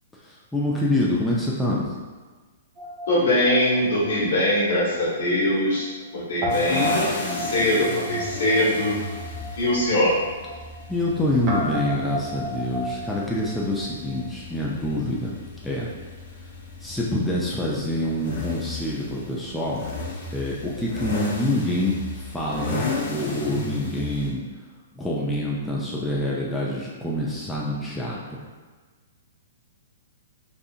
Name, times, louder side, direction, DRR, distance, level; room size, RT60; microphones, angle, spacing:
voice 1, 0.2-2.0 10.9-15.3 15.6-15.9 16.8-19.9 20.3-24.4 24.9-28.4, left 1 dB, 5° left, -6 dB, 0.4 m, -26 dB
Guitar, 2.8-5.2 5.4-5.5 6.4-14.3, equal, 40° right, 0.6 m, -33 dB
voice 2, 3.1-5.9 6.1-9.0 9.5-10.1, left 1 dB, 70° left, -7 dB, 1.2 m, -22 dB
sound 1, 6.5-24.3, left 2 dB, 50° left, 0.7 m, -34 dB
2.7 x 2.4 x 2.4 m, 1.4 s
hypercardioid pair, 125°, 0 cm